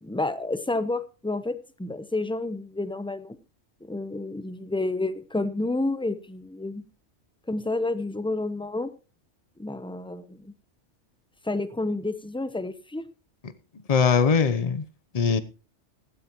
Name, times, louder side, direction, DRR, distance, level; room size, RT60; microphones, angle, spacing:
voice 1, 0.0-3.4 3.8-6.8 7.5-8.9 9.6-10.5 11.4-13.0, left 2 dB, 5° left, 0.6 m, -30 dB
voice 2, 13.9-14.8 15.1-15.4, left 6 dB, 35° left, 0.8 m, -21 dB
16.0 x 13.5 x 3.0 m
omnidirectional pair, 1.2 m